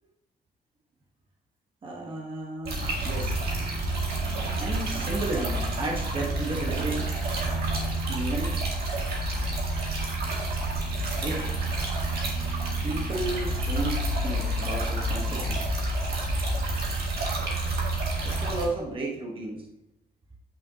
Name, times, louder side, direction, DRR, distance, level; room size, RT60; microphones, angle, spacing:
voice 1, 1.8-3.4 4.6-7.1 8.0-8.6 11.2-11.5 12.8-15.6 18.2-19.7, right 2 dB, 30° right, -1 dB, 1.0 m, -33 dB
sound 1, 2.6-18.6, right 1 dB, 70° right, 2.0 m, -29 dB
9.9 x 5.7 x 2.7 m, 0.94 s
wide cardioid pair, 170°, 16 cm